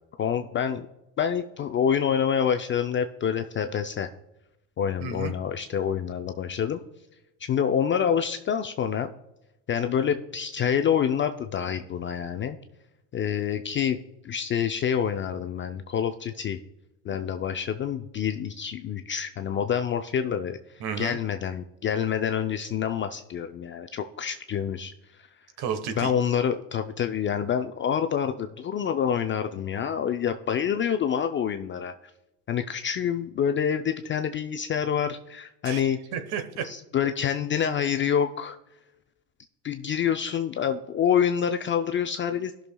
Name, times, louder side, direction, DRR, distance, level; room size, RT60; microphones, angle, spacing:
voice 1, 0.2-0.9 1.2-4.1 4.8-6.8 7.4-9.1 9.7-12.6 13.1-14.0 14.2-16.6 17.0-20.6 21.0-25.3 26.0-31.9 32.5-36.0 36.6-38.6 39.6-42.5, left 8 dB, 25° left, 7 dB, 0.4 m, -27 dB
voice 2, 5.0-5.3 20.8-21.2 25.6-26.1 35.6-36.7, right 6 dB, 55° right, 9 dB, 1.3 m, -32 dB
17.5 x 6.3 x 2.2 m, 0.92 s
supercardioid pair, 95°, 47 cm